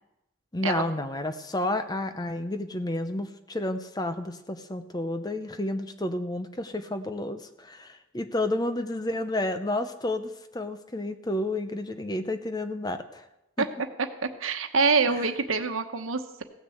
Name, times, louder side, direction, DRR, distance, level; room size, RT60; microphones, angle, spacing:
voice 1, 0.5-13.2 13.6-13.7 15.1-15.2, left 1 dB, 20° left, 9 dB, 0.7 m, -31 dB
voice 2, 14.0-16.4, right 4 dB, 85° right, 7 dB, 1.1 m, -26 dB
16.0 x 6.7 x 7.9 m, 0.93 s
head